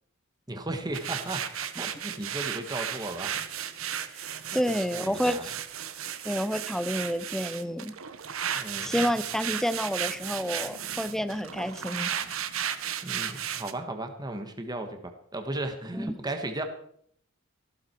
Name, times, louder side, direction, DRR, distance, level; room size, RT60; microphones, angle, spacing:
voice 1, 0.5-1.5 1.7-3.4 4.5-5.5 8.4-9.0 13.0-16.6, right 2 dB, 20° right, 5 dB, 1.5 m, -35 dB
sound 1, 0.9-13.7, right 9 dB, 80° right, 1.0 m, -34 dB
voice 2, 4.5-5.4 6.2-8.0 8.8-12.1 16.0-16.2, equal, ahead, 13 dB, 0.6 m, -29 dB
Boom, 10.0-13.2, left 1 dB, 70° left, 1.4 m, -52 dB
15.0 x 13.0 x 4.6 m, 0.65 s
head